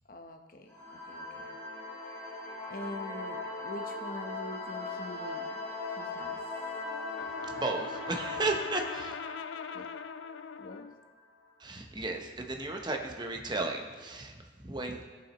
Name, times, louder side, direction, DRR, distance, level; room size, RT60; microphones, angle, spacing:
voice 1, 0.1-1.5 2.7-5.6 5.9-6.4 9.7-9.9 10.6-10.9, left 1 dB, 50° left, 4 dB, 0.9 m, -44 dB
sound 1, 0.7-11.1, left 3 dB, 10° left, 2.1 m, -40 dB
Brass instrument, 6.8-11.0, left 6 dB, 80° left, 0.3 m, -42 dB
voice 2, 7.5-9.1 11.6-15.1, right 2 dB, 25° right, 3 dB, 0.9 m, -34 dB
15.5 x 7.2 x 3.1 m, 1.4 s
head